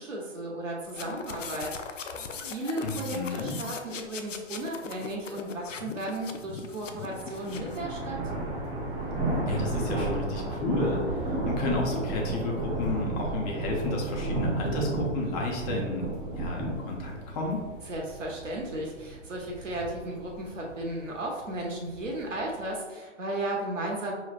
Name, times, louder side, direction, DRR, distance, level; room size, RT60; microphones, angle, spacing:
voice 1, 0.0-2.1 2.4-8.2 17.9-24.1, right 1 dB, 85° right, -1 dB, 1.2 m, -35 dB
sound 1, 0.8-7.8, left 5 dB, 85° left, 0.6 m, -40 dB
voice 2, 2.8-3.6 9.5-16.1 16.3-17.6, left 2 dB, 35° left, -1 dB, 0.9 m, -32 dB
sound 2, 6.7-22.7, right 2 dB, 10° right, 0.5 m, -33 dB
sound 3, 9.0-14.4 17.5-17.6, right 1 dB, 55° right, 0.8 m, -52 dB
5.0 x 3.2 x 2.4 m, 1.3 s
figure-of-eight pair, 120°, 37 cm